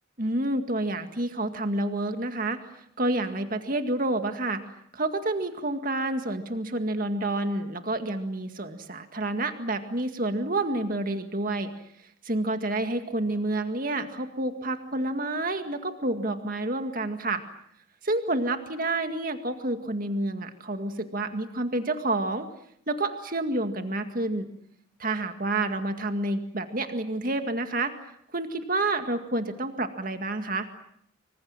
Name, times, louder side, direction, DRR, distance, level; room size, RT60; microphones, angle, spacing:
voice 1, 0.2-2.6 3.0-4.6 4.9-11.7 12.2-17.4 18.0-22.5 22.9-24.5 25.0-27.9 28.3-30.7, right 2 dB, 45° right, 7 dB, 2.0 m, -29 dB
26.0 x 25.0 x 7.4 m, 0.69 s
head